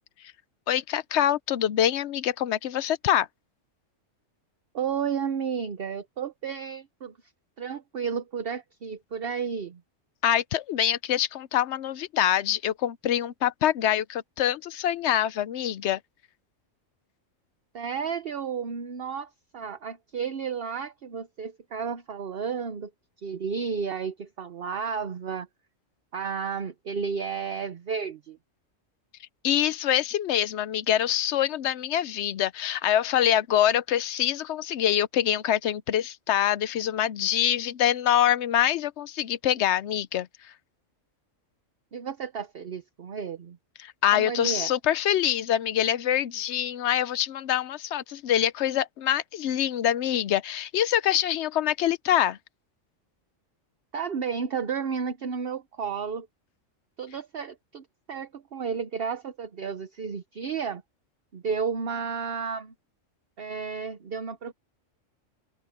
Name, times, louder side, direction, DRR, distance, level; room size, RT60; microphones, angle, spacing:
voice 1, 0.7-3.3 10.2-16.0 29.4-40.3 43.8-52.4, left 11 dB, 65° left, 0.9 m, -25 dB
voice 2, 4.7-7.1 7.6-9.8 17.7-22.9 23.2-25.5 26.1-28.4 41.9-43.6 44.1-44.7 53.9-56.3 57.0-60.8 61.3-62.7 63.4-64.5, right 6 dB, 50° right, 1.0 m, -32 dB
open air
omnidirectional pair, 1.3 m